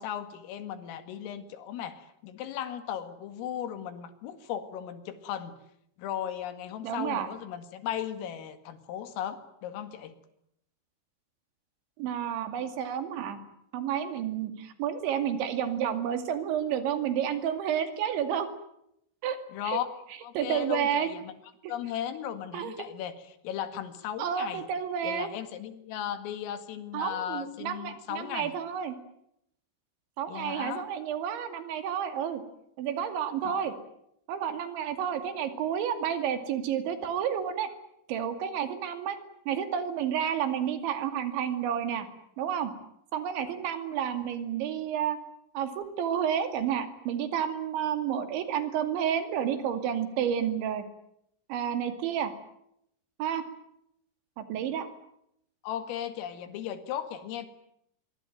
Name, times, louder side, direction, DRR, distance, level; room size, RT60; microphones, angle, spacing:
voice 1, 0.0-5.6 6.0-10.2 19.5-19.9 20.2-21.3 21.7-24.7 25.0-28.5 30.3-30.9 33.4-33.7 55.6-57.5, left 10 dB, 85° left, 10 dB, 4.7 m, -36 dB
voice 2, 6.8-7.3 12.0-13.4 13.7-18.5 19.2-19.4 19.6-19.8 20.3-21.1 22.5-22.7 24.2-25.3 26.9-28.9 30.2-32.4 32.8-33.7 34.3-37.7 38.1-39.2 39.5-42.1 42.4-42.7 43.1-45.2 45.5-50.8 51.5-52.3 53.2-53.4 54.4-54.9, right 9 dB, 65° right, 9 dB, 4.6 m, -30 dB
25.0 x 23.5 x 9.2 m, 0.76 s
omnidirectional pair, 5.8 m